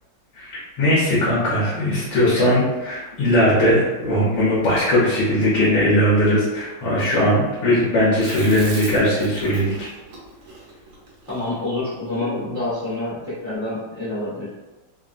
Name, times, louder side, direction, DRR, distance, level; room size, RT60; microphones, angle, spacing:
voice 1, 0.3-9.7, equal, 65° left, -8 dB, 1.4 m, -19 dB
Chewing mastication, 8.2-12.6, right 2 dB, 65° right, 1.1 m, -38 dB
voice 2, 11.3-14.5, left 2 dB, 90° left, -13 dB, 0.4 m, -27 dB
3.5 x 2.1 x 2.4 m, 1.2 s
omnidirectional pair, 2.4 m